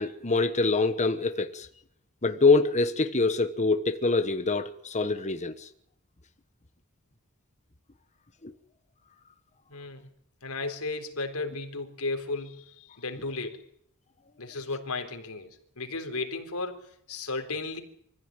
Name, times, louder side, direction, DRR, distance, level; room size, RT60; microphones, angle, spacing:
voice 1, 0.0-1.7 2.2-5.7 8.4-8.5, left 3 dB, 35° left, 1.3 m, -25 dB
voice 2, 9.7-10.1 10.4-13.6 14.4-16.8 17.1-17.8, left 3 dB, 85° left, 3.9 m, -34 dB
25.5 x 15.5 x 9.1 m
head